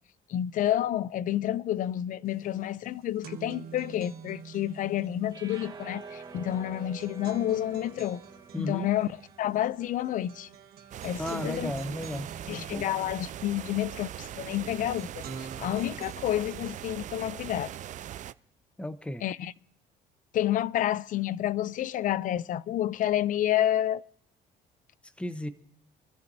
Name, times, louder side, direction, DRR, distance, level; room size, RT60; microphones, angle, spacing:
voice 1, 0.3-8.2 8.6-9.1 9.4-10.5 11.0-11.7 12.5-17.7 19.2-19.5 20.3-24.0, left 12 dB, 50° left, 0.4 m, -29 dB
sound 1, 2.3-2.4 2.7-18.2, right 6 dB, 65° right, 1.4 m, -47 dB
sound 2, 5.3-11.6, right 4 dB, 25° right, 1.5 m, -48 dB
voice 2, 8.5-8.9 11.2-12.3 12.7-12.8 18.8-19.2 25.2-25.5, left 1 dB, 5° left, 0.9 m, -34 dB
sound 3, 10.9-18.3, right 11 dB, 45° right, 0.4 m, -41 dB
26.5 x 14.0 x 2.7 m
cardioid pair, 110°, 17 cm